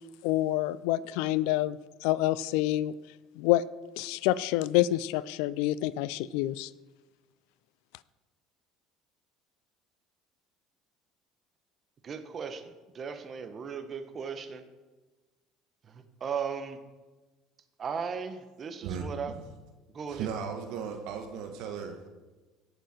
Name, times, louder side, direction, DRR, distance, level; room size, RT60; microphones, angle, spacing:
voice 1, 0.2-2.9 3.4-3.6 4.0-6.7, left 15 dB, 70° left, 19 dB, 0.4 m, -27 dB
voice 2, 12.0-14.6 15.8-16.8 17.8-19.3 19.9-20.3, right 6 dB, 40° right, 8 dB, 1.4 m, -37 dB
voice 3, 18.8-19.5 20.1-22.1, right 6 dB, 65° right, 5 dB, 1.7 m, -37 dB
17.0 x 7.0 x 4.6 m, 1.2 s
hypercardioid pair, 70°, 0 cm